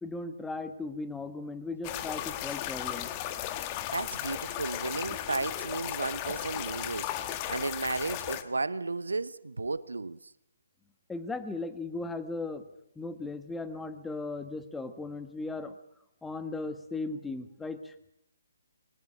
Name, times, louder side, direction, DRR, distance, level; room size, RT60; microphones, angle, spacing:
voice 1, 0.0-3.1 11.1-12.6 12.9-15.7 16.2-17.9, left 3 dB, 5° left, 1.5 m, -37 dB
sound 1, 1.8-8.4, left 12 dB, 25° left, 1.4 m, -36 dB
voice 2, 3.6-10.2, right 3 dB, 80° right, 0.9 m, -34 dB
23.0 x 19.5 x 7.6 m
figure-of-eight pair, 140°, 0 cm